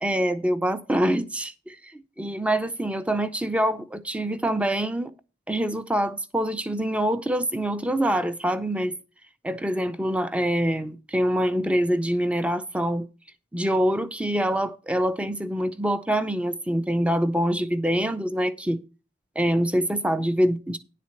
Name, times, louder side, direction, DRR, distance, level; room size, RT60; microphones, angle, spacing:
voice 1, 0.0-5.1 5.5-8.9 9.4-13.1 13.5-18.8 19.4-20.8, equal, 5° right, 0.5 m, -25 dB
10.5 x 4.1 x 7.7 m
head